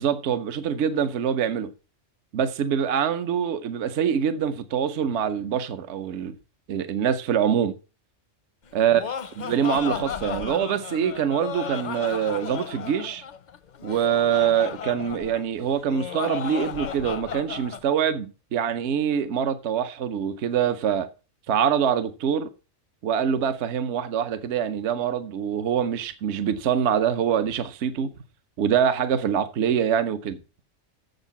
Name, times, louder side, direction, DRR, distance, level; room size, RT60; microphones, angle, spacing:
voice 1, 0.0-1.7 2.3-6.4 6.7-7.7 8.7-9.0 9.4-13.2 13.8-21.1 21.5-22.5 23.0-28.1 28.6-30.4, right 8 dB, 65° right, 1.0 m, -24 dB
Laughter, 8.7-17.8, left 7 dB, 50° left, 0.6 m, -34 dB
7.2 x 6.6 x 7.1 m
omnidirectional pair, 1.3 m